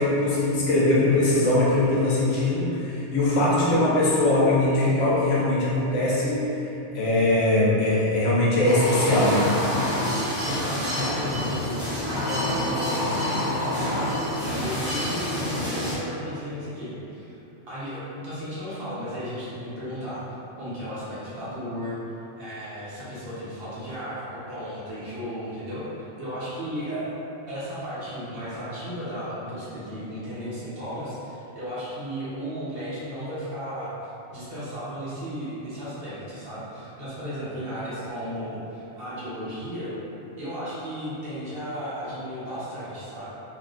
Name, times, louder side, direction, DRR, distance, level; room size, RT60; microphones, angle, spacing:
voice 1, 0.0-6.7 6.9-9.5, left 1 dB, 85° left, -7 dB, 1.1 m, -21 dB
sound 1, 8.6-15.9, left 1 dB, 5° right, 0.6 m, -27 dB
voice 2, 10.4-14.1 14.4-17.4 17.7-20.2 20.6-27.1 27.5-33.9 34.3-39.9 40.4-43.3, equal, 55° right, -11 dB, 1.1 m, -34 dB
3.3 x 2.3 x 2.4 m, 2.9 s
omnidirectional pair, 1.2 m